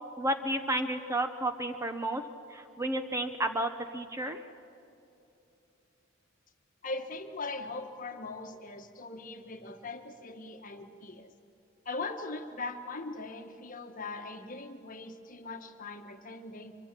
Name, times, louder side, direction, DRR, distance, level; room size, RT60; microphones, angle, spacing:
voice 1, 0.2-2.2 2.5-4.4, right 1 dB, 15° right, 7 dB, 0.8 m, -32 dB
voice 2, 6.8-11.3 11.8-16.8, left 3 dB, 40° left, 6 dB, 1.4 m, -40 dB
24.5 x 23.5 x 7.5 m, 2.8 s
head